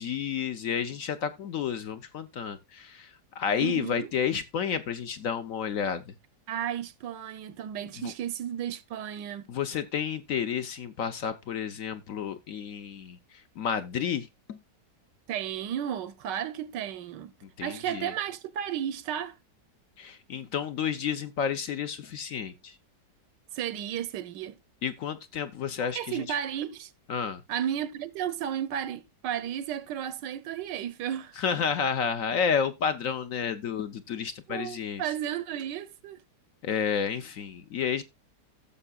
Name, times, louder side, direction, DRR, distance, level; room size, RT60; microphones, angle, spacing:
voice 1, 0.0-6.1 8.0-8.1 9.5-13.2 13.6-14.6 17.4-18.1 20.0-22.7 24.8-26.2 27.1-27.4 31.4-35.0 36.6-38.0, left 7 dB, 60° left, 1.0 m, -31 dB
voice 2, 3.5-4.1 6.5-9.5 15.3-17.3 17.6-19.4 23.5-24.6 25.9-26.9 27.5-31.4 34.5-36.2, right 10 dB, 90° right, 1.4 m, -33 dB
15.5 x 6.8 x 2.3 m
omnidirectional pair, 1.9 m